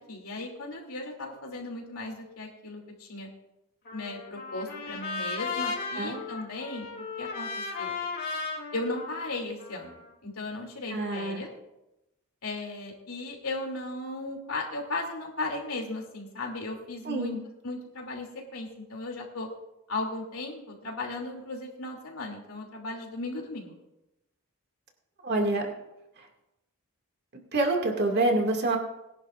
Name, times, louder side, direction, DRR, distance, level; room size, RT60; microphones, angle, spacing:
voice 1, 0.1-3.3 3.9-8.0 8.7-9.9 10.2-11.5 12.4-17.3 17.6-19.5 19.9-23.8, left 2 dB, 80° left, 1 dB, 2.8 m, -36 dB
Trumpet, 3.9-10.1, left 4 dB, 50° left, 3.5 m, -36 dB
voice 2, 10.9-11.4 17.1-17.4 25.2-25.7 27.5-28.8, right 2 dB, 50° right, 2 dB, 2.2 m, -26 dB
21.5 x 11.0 x 2.5 m, 0.93 s
head